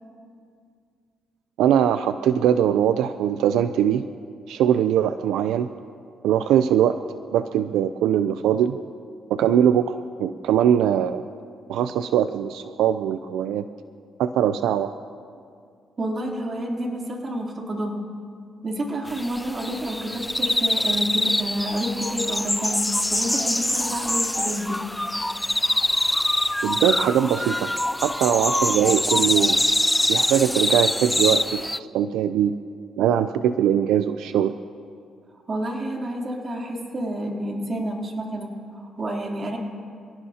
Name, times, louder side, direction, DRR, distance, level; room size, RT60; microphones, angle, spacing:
voice 1, 1.6-4.1 4.5-5.7 6.2-7.0 7.3-8.8 9.3-11.2 11.7-13.6 14.2-14.9 26.6-27.7 28.0-29.6 30.1-31.6 31.9-32.6 33.0-34.5, right 9 dB, 85° right, 10 dB, 0.4 m, -21 dB
voice 2, 16.0-18.1 18.6-24.8 35.5-39.6, right 1 dB, 40° right, 0 dB, 3.2 m, -29 dB
sound 1, 19.1-31.8, left 1 dB, 5° left, 0.4 m, -24 dB
28.5 x 18.0 x 2.9 m, 2.3 s
cardioid pair, 90°, 0 cm